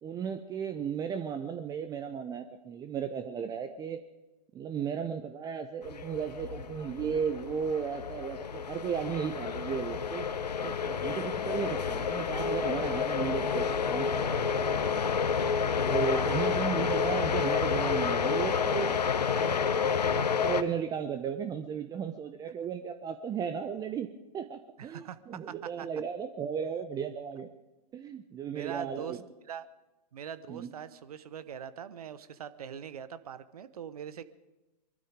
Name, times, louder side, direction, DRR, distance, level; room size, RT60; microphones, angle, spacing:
voice 1, 0.0-4.0 4.5-10.3 10.6-14.7 15.8-18.9 19.3-19.6 20.1-24.1 24.3-27.5 27.9-29.2 30.5-30.7, right 7 dB, 20° right, 9 dB, 0.7 m, -35 dB
sound 1, 5.8-20.6, left 6 dB, 75° left, 0.9 m, -30 dB
voice 2, 16.1-16.7 24.8-25.9 28.5-29.2 29.5-29.7 30.1-34.2, right 8 dB, 65° right, 14 dB, 1.0 m, -42 dB
23.0 x 12.5 x 5.1 m, 1.0 s
figure-of-eight pair, 105°, 21 cm